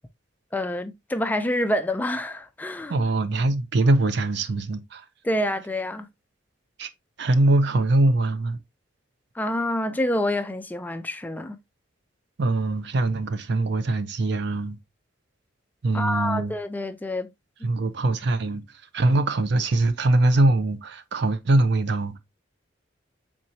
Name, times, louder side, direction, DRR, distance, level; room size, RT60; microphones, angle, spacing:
voice 1, 0.5-3.0 5.2-6.1 9.4-11.6 15.9-17.3, left 1 dB, 10° left, 0.3 m, -27 dB
voice 2, 2.9-5.0 6.8-6.9 7.2-8.6 12.4-14.8 15.8-16.5 17.6-18.6 18.9-22.2, right 2 dB, 65° right, 0.5 m, -22 dB
4.3 x 3.7 x 2.6 m
head